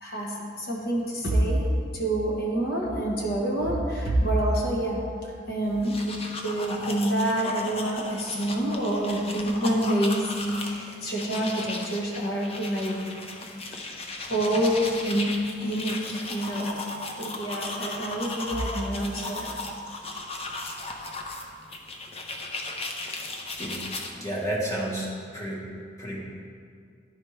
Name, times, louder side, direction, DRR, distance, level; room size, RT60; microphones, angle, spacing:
voice 1, 0.0-1.7 1.9-5.1 5.5-13.0 13.9-14.0 14.3-16.8 17.2-19.6, right 1 dB, 55° left, -3 dB, 1.3 m, -27 dB
sound 1, 5.7-24.1, left 2 dB, 30° left, 0.6 m, -36 dB
voice 2, 24.1-25.6 26.0-26.2, right 1 dB, 15° left, -5 dB, 1.3 m, -31 dB
11.0 x 4.2 x 3.2 m, 2.2 s
head